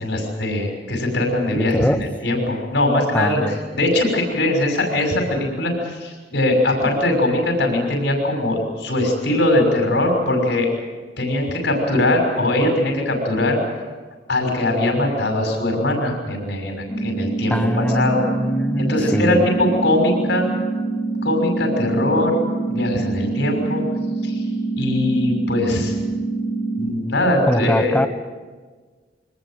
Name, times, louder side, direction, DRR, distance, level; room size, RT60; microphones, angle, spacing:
voice 1, 0.0-10.7 11.2-13.6 14.3-18.2 18.8-20.5 21.2-22.4 22.7-23.8 24.2-24.5 24.8-25.9 26.8-28.0, left 1 dB, 70° left, 2 dB, 6.1 m, -21 dB
voice 2, 1.6-2.0 3.1-3.6 17.5-19.5 27.5-28.1, equal, 10° left, 10 dB, 1.0 m, -22 dB
sound 1, 16.9-26.9, right 3 dB, 35° left, 3.9 m, -25 dB
24.5 x 19.5 x 7.8 m, 1.4 s
head